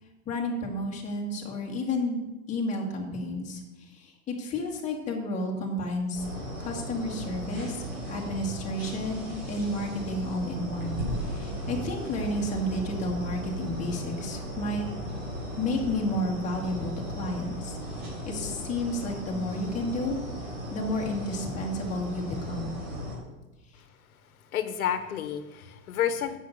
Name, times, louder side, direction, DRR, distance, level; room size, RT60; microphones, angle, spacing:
voice 1, 0.3-7.8 8.1-15.2 15.6-17.8 18.3-20.2 20.7-22.8 23.7-23.8, left 1 dB, 15° left, -2 dB, 2.0 m, -31 dB
sound 1, 6.1-23.2, equal, 25° right, 3.6 m, -36 dB
voice 2, 24.5-26.4, left 9 dB, 85° left, 9 dB, 1.1 m, -30 dB
7.7 x 6.6 x 7.7 m, 1.1 s
supercardioid pair, 155°, 42 cm